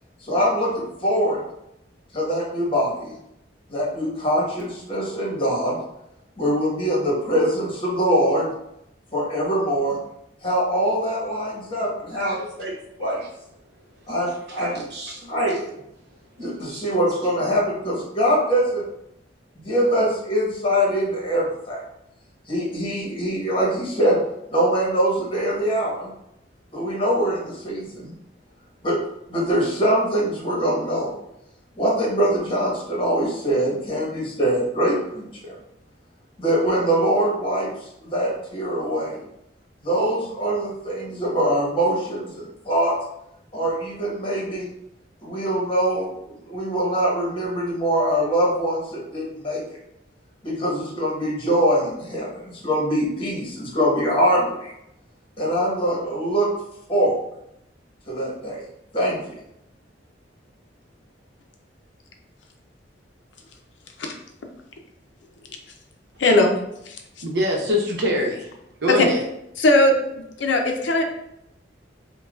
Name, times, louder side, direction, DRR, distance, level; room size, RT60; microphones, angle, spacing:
voice 1, 0.3-1.4 2.1-3.1 3.7-5.8 6.4-8.5 9.1-10.0 10.4-12.4 13.0-13.1 14.1-14.8 15.3-15.7 16.4-18.8 19.6-21.8 22.5-24.2 24.5-26.1 26.7-28.1 28.8-29.0 29.3-31.1 31.7-35.5 36.4-37.7 38.0-39.2 39.8-42.9 43.5-44.7 45.2-49.8 50.4-54.7 55.4-56.5 56.9-57.1 58.1-58.6 58.9-59.3, equal, 30° left, -4 dB, 1.2 m, -23 dB
voice 2, 12.1-13.3 14.1-15.6 16.4-17.6 67.2-68.5 68.8-69.2, left 1 dB, 60° right, -1 dB, 0.9 m, -27 dB
voice 3, 66.2-66.5 66.9-67.0 68.9-69.1 69.6-69.9 70.4-71.1, left 2 dB, 70° left, 3 dB, 0.5 m, -18 dB
5.4 x 2.3 x 2.4 m, 0.80 s
head